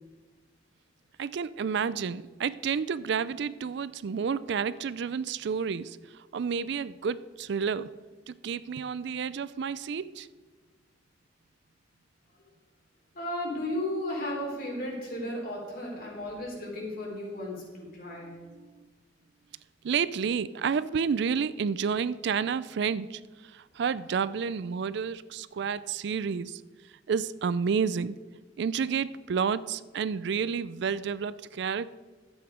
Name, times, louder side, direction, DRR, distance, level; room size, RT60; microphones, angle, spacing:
voice 1, 1.2-7.9 8.3-10.3 19.8-26.6 27.1-28.2 28.6-31.9, right 6 dB, 65° right, 17 dB, 0.4 m, -30 dB
voice 2, 13.1-18.4, left 1 dB, 50° left, -2 dB, 3.6 m, -34 dB
12.5 x 8.1 x 5.0 m, 1.3 s
head